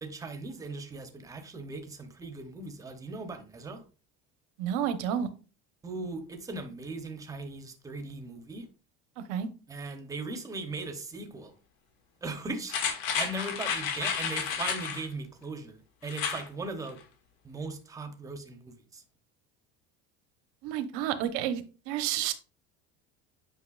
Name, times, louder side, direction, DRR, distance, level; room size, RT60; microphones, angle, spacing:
voice 1, 0.0-3.8 5.8-8.7 9.7-11.5 12.2-12.8 13.1-17.0 17.4-19.0, right 3 dB, 10° right, 0.8 m, -38 dB
voice 2, 4.6-5.3 9.3-9.5 20.6-22.3, right 10 dB, 65° right, 1.0 m, -30 dB
sound 1, 12.7-15.0 16.1-16.4 16.8-16.9, left 7 dB, 85° left, 1.7 m, -31 dB
8.4 x 5.7 x 2.4 m
cardioid pair, 175°, 29 cm